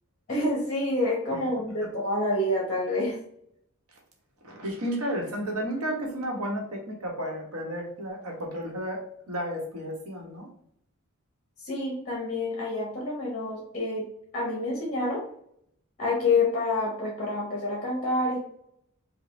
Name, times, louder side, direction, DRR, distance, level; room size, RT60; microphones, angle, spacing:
voice 1, 0.3-3.2 11.6-14.1 14.3-15.2 16.0-18.4, left 2 dB, 35° left, -3 dB, 1.0 m, -27 dB
voice 2, 4.4-9.0 9.3-10.5, equal, 80° right, 0 dB, 1.3 m, -32 dB
5.0 x 2.4 x 3.3 m, 0.70 s
head